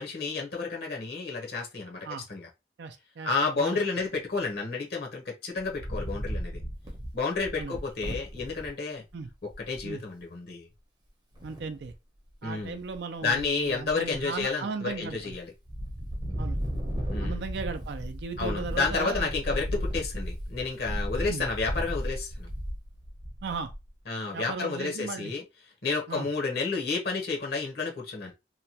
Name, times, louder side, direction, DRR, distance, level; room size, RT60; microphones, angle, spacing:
voice 1, 0.0-2.5 3.2-6.6 7.1-9.0 9.4-10.7 12.4-12.8 13.2-15.5 17.1-17.4 18.4-22.5 24.1-25.4 25.8-28.3, left 4 dB, 55° left, 0.8 m, -31 dB
voice 2, 2.8-3.8 7.6-7.8 9.1-9.3 9.8-10.0 11.4-11.9 12.4-15.4 16.4-16.6 17.2-19.6 21.3-21.5 23.4-23.7 24.3-25.3 26.1-26.3, right 4 dB, 70° right, 0.4 m, -37 dB
Wind, 5.6-8.7 9.2-9.3 9.5-9.9 11.3-11.9 12.5-13.0 13.3-14.4 14.9-15.4 15.7-23.9, equal, 25° right, 0.7 m, -35 dB
2.9 x 2.2 x 2.7 m
head